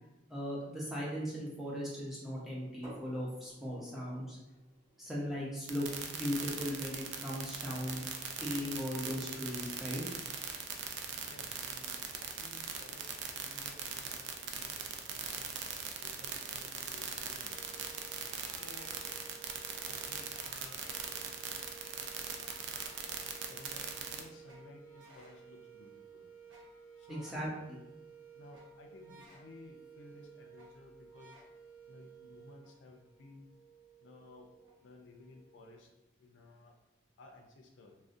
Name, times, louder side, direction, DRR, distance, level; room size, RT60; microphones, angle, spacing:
voice 1, 0.3-4.4 5.0-8.0 8.4-10.0 27.1-27.8, equal, ahead, -6 dB, 0.5 m, -38 dB
sound 1, 2.8-8.5, right 1 dB, 30° right, 1.0 m, -58 dB
sound 2, 5.7-24.2, right 7 dB, 70° right, 0.3 m, -40 dB
voice 2, 11.3-15.5 16.0-17.8 18.4-18.9 19.8-20.8 23.3-26.3 27.0-27.6 28.3-31.4 31.9-33.5 34.0-34.5 34.8-35.9 36.2-36.8 37.2-38.0, left 2 dB, 80° left, 3 dB, 0.4 m, -56 dB
sound 3, 17.5-35.7, right 5 dB, 85° right, 0.7 m, -56 dB
2.4 x 2.0 x 2.5 m, 0.96 s
head